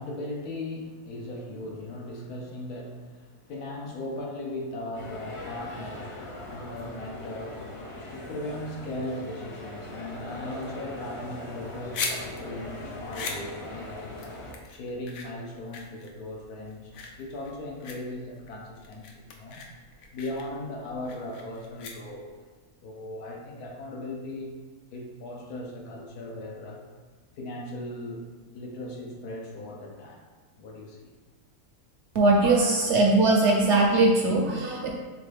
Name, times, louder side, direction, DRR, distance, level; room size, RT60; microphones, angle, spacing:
voice 1, 0.0-14.1 14.7-19.6 20.1-22.3 22.8-24.5 24.9-26.9 27.4-28.3 28.5-30.2 30.6-31.1 32.5-32.9 33.5-33.6, left 1 dB, 90° left, 0 dB, 1.3 m, -38 dB
sound 1, 4.9-14.5, left 1 dB, 50° left, 0.4 m, -40 dB
sound 2, 11.5-22.4, left 4 dB, 70° left, 1.0 m, -40 dB
voice 2, 32.1-34.9, right 2 dB, 65° right, -1 dB, 0.7 m, -21 dB
3.9 x 3.7 x 3.3 m, 1.4 s
omnidirectional pair, 1.6 m